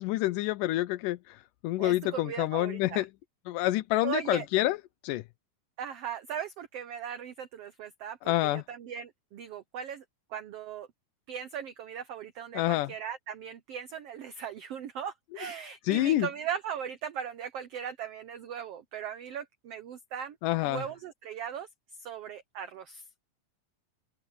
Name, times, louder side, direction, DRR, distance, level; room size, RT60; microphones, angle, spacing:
voice 1, 0.0-3.1 3.5-4.8 5.0-5.2 8.2-8.6 12.5-12.9 15.8-16.3 20.4-20.8, left 16 dB, 75° left, 2.2 m, -28 dB
voice 2, 1.8-3.0 4.0-4.5 5.8-10.0 10.3-10.9 11.3-20.4 20.6-21.7 22.0-23.0, right 8 dB, 85° right, 1.3 m, -38 dB
omnidirectional pair, 3.9 m